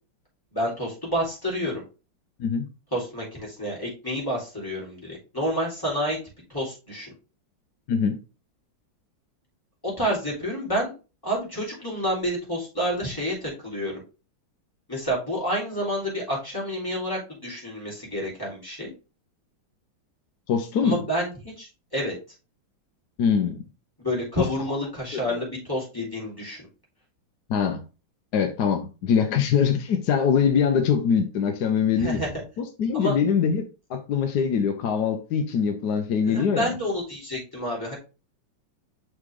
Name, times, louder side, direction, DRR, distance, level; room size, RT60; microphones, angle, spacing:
voice 1, 0.5-1.8 2.9-6.2 6.5-7.1 9.8-10.9 11.2-13.9 14.9-18.9 20.8-22.1 24.0-26.6 32.0-32.4 32.9-33.2 36.3-38.0, equal, 10° left, 3.4 m, -29 dB
voice 2, 7.9-8.2 20.5-21.0 23.2-23.6 24.4-24.5 25.1-25.2 27.5-27.8 28.3-32.2 32.6-36.7, left 7 dB, 65° left, 1.2 m, -23 dB
6.4 x 4.8 x 3.6 m
omnidirectional pair, 2.2 m